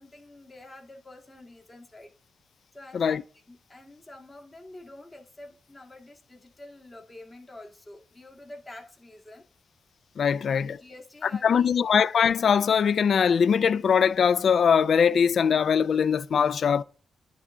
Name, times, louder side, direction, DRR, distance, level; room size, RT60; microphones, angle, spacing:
voice 1, 0.0-2.1 2.7-9.5 10.4-11.8, left 2 dB, 25° left, 1.9 m, -47 dB
voice 2, 10.2-10.7 11.2-16.8, left 7 dB, 65° left, 0.3 m, -22 dB
10.0 x 3.5 x 3.7 m
cardioid pair, 70°, 0 cm